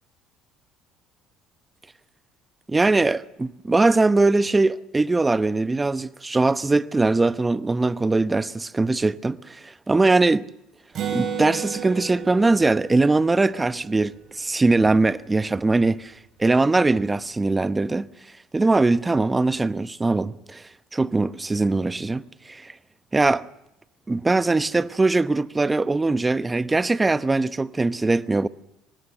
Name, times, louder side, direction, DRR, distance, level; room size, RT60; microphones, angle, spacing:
voice 1, 2.7-10.5 11.1-16.1 16.4-18.1 18.5-20.6 20.9-22.7 23.1-23.5 24.1-28.5, right 3 dB, 20° right, 0.9 m, -21 dB
Acoustic guitar, 10.9-14.6, right 8 dB, 55° right, 6.0 m, -33 dB
24.5 x 20.0 x 7.7 m
supercardioid pair, 85°, 0 cm